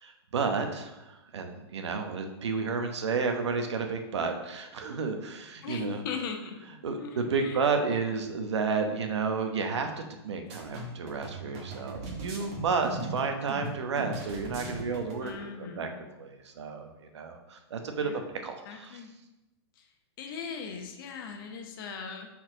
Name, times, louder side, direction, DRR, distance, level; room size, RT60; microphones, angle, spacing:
voice 1, 0.0-6.0 6.8-9.9 10.2-15.3 15.6-15.9 16.2-18.1 18.4-19.0, right 5 dB, 90° right, 5 dB, 1.0 m, -31 dB
voice 2, 5.6-6.6 7.0-7.6 8.0-8.2 15.2-16.1 18.0-18.4 18.6-19.1 19.8-19.9 20.2-22.3, left 5 dB, 55° left, 3 dB, 1.0 m, -39 dB
sound 1, 10.5-15.4, right 3 dB, 40° right, 1.5 m, -39 dB
4.6 x 4.2 x 4.9 m, 0.99 s
hypercardioid pair, 145°, 14 cm